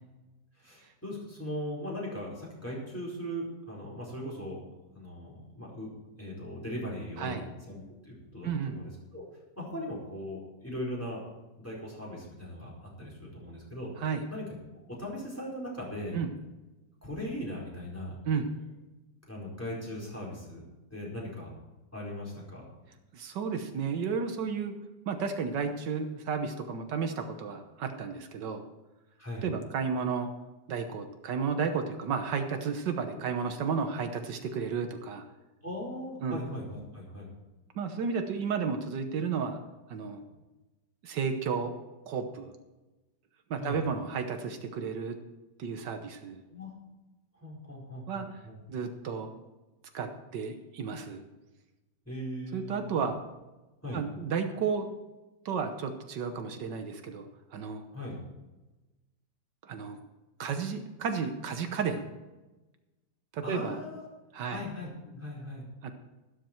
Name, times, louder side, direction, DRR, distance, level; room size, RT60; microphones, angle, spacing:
voice 1, 0.5-4.6 4.9-5.9 6.2-9.2 9.6-11.2 11.6-13.9 14.3-14.4 14.9-16.2 17.0-18.2 19.3-20.6 20.9-21.5 21.9-22.7 29.2-29.4 35.6-37.3 43.6-43.8 46.5-46.7 47.3-48.6 52.0-53.0 53.8-54.0 57.9-58.2 63.4-64.1 64.5-65.7, equal, 10° left, -4 dB, 4.6 m, -39 dB
voice 2, 8.4-8.8 14.0-14.2 16.1-16.3 18.3-18.5 23.1-24.8 25.1-28.6 29.4-30.3 30.7-35.2 36.2-36.4 37.8-39.6 39.9-40.2 41.0-41.7 42.1-42.5 43.5-45.2 45.6-46.4 48.1-48.4 48.7-49.3 49.9-51.2 52.5-53.2 53.9-54.9 55.5-57.3 57.5-57.8 59.6-60.0 60.4-62.1 63.3-63.8 64.3-64.6 65.8-65.9, right 6 dB, 80° right, 6 dB, 1.7 m, -32 dB
12.5 x 12.5 x 4.5 m, 1.1 s
omnidirectional pair, 1.9 m